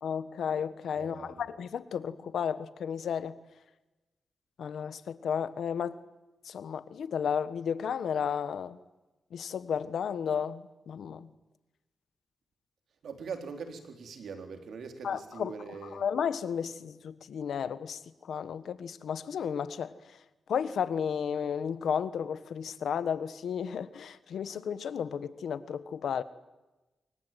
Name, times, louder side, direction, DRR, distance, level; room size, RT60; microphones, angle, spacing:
voice 1, 0.0-3.3 4.6-6.0 6.4-8.8 9.3-11.3 15.0-15.5 15.9-18.0 18.3-19.9 20.5-26.2, left 7 dB, 80° left, 14 dB, 1.4 m, -33 dB
voice 2, 1.0-1.4 13.0-16.0, right 5 dB, 80° right, 6 dB, 3.8 m, -42 dB
25.5 x 23.0 x 9.3 m, 1.1 s
cardioid pair, 70°, 0 cm